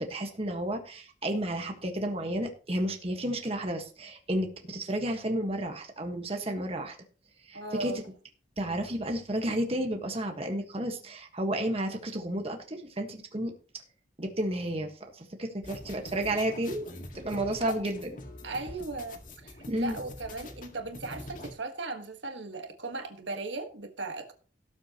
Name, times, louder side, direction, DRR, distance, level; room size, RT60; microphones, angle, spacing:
voice 1, 0.0-6.9 7.5-7.9 8.6-13.5 14.2-18.2 19.7-20.0, right 1 dB, 30° right, 1.4 m, -32 dB
voice 2, 7.5-8.0 17.6-17.7 18.4-24.3, right 3 dB, 70° right, 1.6 m, -37 dB
sound 1, 15.6-21.5, left 1 dB, 45° left, 1.9 m, -45 dB
17.5 x 7.3 x 3.0 m
head